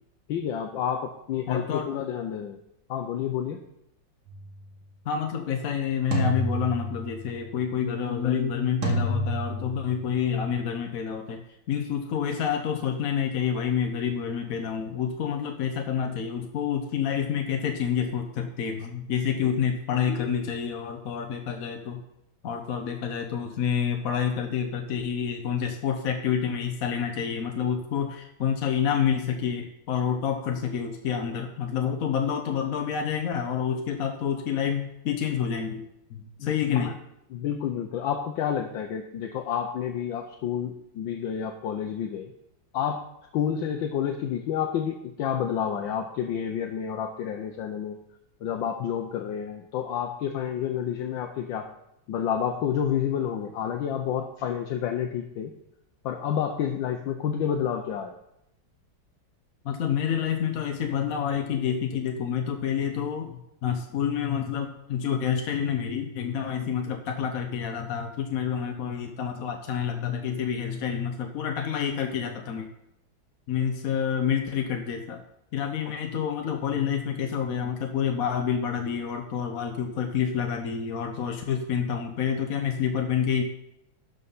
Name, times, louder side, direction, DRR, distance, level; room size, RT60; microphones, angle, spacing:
voice 1, 0.3-2.6 2.9-3.6 36.4-36.5 36.7-36.9 37.3-42.3 42.7-43.0 43.3-48.0 48.4-51.7 52.1-55.5 56.0-58.2 75.9-76.0, left 8 dB, 75° left, 4 dB, 1.5 m, -29 dB
voice 2, 1.5-1.9 5.0-11.4 11.7-22.0 22.4-35.8 36.1-36.9 59.6-72.7 73.5-75.2 75.5-83.4, left 8 dB, 55° left, 4 dB, 1.1 m, -28 dB
sound 1, 4.3-4.6 6.1-7.3 8.8-10.0, right 1 dB, 90° right, 2.5 m, -29 dB
12.5 x 5.6 x 5.4 m, 0.81 s
omnidirectional pair, 2.1 m